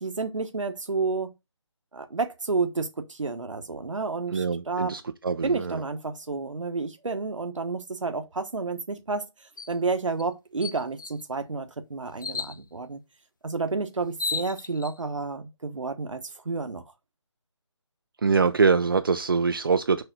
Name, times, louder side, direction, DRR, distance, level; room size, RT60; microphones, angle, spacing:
voice 1, 0.0-1.3 1.9-5.0 5.4-13.0 13.4-16.8, right 4 dB, 80° right, 1.3 m, -30 dB
voice 2, 4.3-5.8 18.2-20.0, right 5 dB, 45° right, 0.6 m, -24 dB
sound 1, 9.6-9.8 10.2-10.3 10.6-11.2 12.2-12.6 13.7-13.8 14.0-14.9, left 5 dB, 40° left, 0.6 m, -33 dB
6.9 x 5.8 x 4.0 m
figure-of-eight pair, 170°, 16 cm